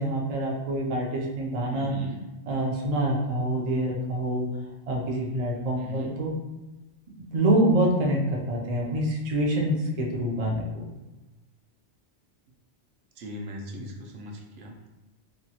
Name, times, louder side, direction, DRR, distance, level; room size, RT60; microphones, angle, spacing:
voice 1, 0.0-1.9 2.5-4.5 4.9-6.3 7.2-10.9, right 1 dB, 50° right, -2 dB, 0.5 m, -26 dB
voice 2, 1.7-2.2 5.8-6.2 13.2-14.9, equal, 85° right, 0 dB, 0.9 m, -39 dB
2.9 x 2.3 x 2.8 m, 1.1 s
omnidirectional pair, 1.2 m